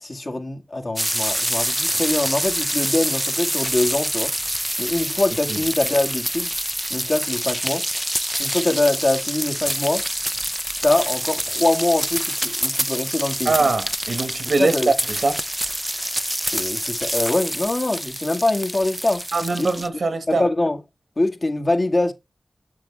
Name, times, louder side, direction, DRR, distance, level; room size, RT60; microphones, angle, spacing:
voice 1, 0.0-4.3 4.8-6.5 6.9-7.8 8.4-10.0 10.8-13.5 14.6-14.9 16.5-19.2 19.6-19.7 20.3-20.8 21.2-22.1, left 2 dB, 50° left, 1.8 m, -23 dB
sound 1, 1.0-19.9, equal, 10° right, 0.4 m, -26 dB
voice 2, 13.4-15.4 19.3-20.5, right 3 dB, 75° right, 1.5 m, -22 dB
7.3 x 7.3 x 3.3 m
cardioid pair, 40°, 0 cm